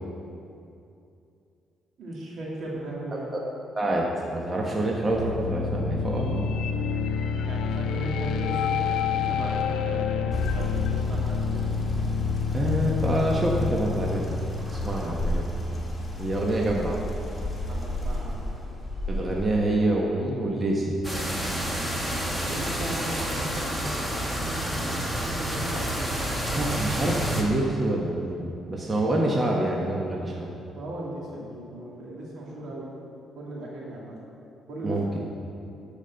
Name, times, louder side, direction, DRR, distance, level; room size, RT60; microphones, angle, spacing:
voice 1, 2.0-3.3 7.5-11.6 17.7-18.6 22.4-25.9 30.8-32.9 33.4-34.2 34.7-35.0, right 1 dB, 70° right, -4 dB, 2.8 m, -37 dB
voice 2, 3.1-3.4 3.8-4.1 4.3-6.4 12.5-14.2 14.7-15.5 16.2-17.1 19.1-21.0 26.6-30.5 34.8-35.0, right 1 dB, 30° right, -2 dB, 1.3 m, -26 dB
sound 1, 5.1-16.0, left 6 dB, 80° left, 0.5 m, -28 dB
sound 2, 10.3-19.6, left 1 dB, 15° left, 2.1 m, -32 dB
sound 3, 21.0-27.4, equal, 10° right, 1.9 m, -29 dB
11.0 x 5.2 x 7.7 m, 2.6 s
cardioid pair, 90°, 0 cm